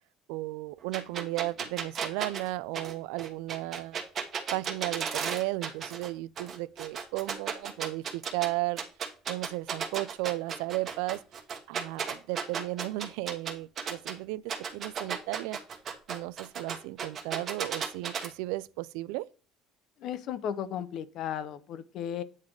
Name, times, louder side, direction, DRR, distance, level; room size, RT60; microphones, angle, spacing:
voice 1, 0.3-4.0 4.5-8.8 9.3-11.2 11.7-15.6 16.1-19.3, right 19 dB, 90° right, 0.3 m, -34 dB
sound 1, 0.9-6.1 6.4-8.5 8.8-14.1 14.5-18.3, right 6 dB, 35° right, 1.1 m, -34 dB
voice 2, 20.0-22.2, left 9 dB, 45° left, 0.6 m, -35 dB
8.7 x 4.0 x 4.8 m
cardioid pair, 165°, 0 cm